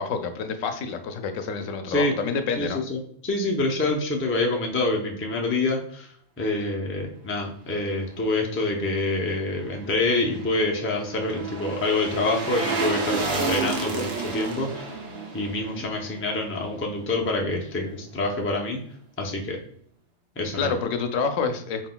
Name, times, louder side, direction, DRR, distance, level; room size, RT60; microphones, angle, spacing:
voice 1, 0.0-2.8 20.6-21.9, left 5 dB, 85° left, 7 dB, 1.0 m, -28 dB
voice 2, 2.6-6.1 6.4-14.9 15.3-18.8 19.2-19.6 20.4-20.8, left 2 dB, 20° left, 0 dB, 0.4 m, -26 dB
sound 1, 9.9-17.1 17.4-17.5, right 3 dB, 55° right, 0.9 m, -31 dB
4.6 x 3.8 x 2.2 m, 0.62 s
omnidirectional pair, 1.3 m